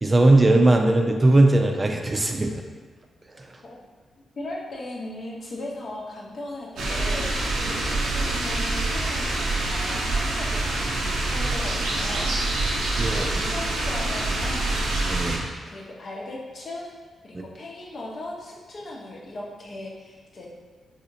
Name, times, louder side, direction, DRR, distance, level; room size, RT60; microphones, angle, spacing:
voice 1, 0.0-2.6 3.4-3.5 13.0-13.3 15.1-15.5, right 2 dB, 30° right, 3 dB, 0.4 m, -19 dB
voice 2, 4.4-12.3 13.1-15.0 15.7-16.9 17.2-20.5, left 2 dB, 60° left, -3 dB, 0.8 m, -38 dB
sound 1, 6.8-15.4, right 2 dB, 85° right, 0.6 m, -26 dB
4.0 x 2.8 x 2.6 m, 1.4 s
supercardioid pair, 50°, 0 cm